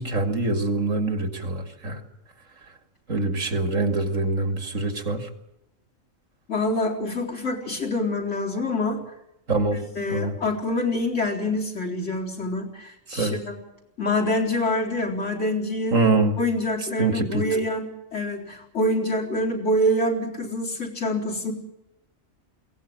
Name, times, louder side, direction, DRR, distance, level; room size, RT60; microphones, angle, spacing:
voice 1, 0.0-2.0 3.1-5.3 9.5-9.8 10.1-10.4 13.1-13.4 15.9-16.4 16.8-17.5, right 3 dB, 80° right, 6 dB, 2.8 m, -24 dB
voice 2, 6.5-9.0 10.0-13.5 14.0-16.0 16.4-17.9 18.1-21.5, left 1 dB, 65° left, 0 dB, 4.2 m, -26 dB
22.0 x 17.5 x 8.7 m, 0.91 s
omnidirectional pair, 1.3 m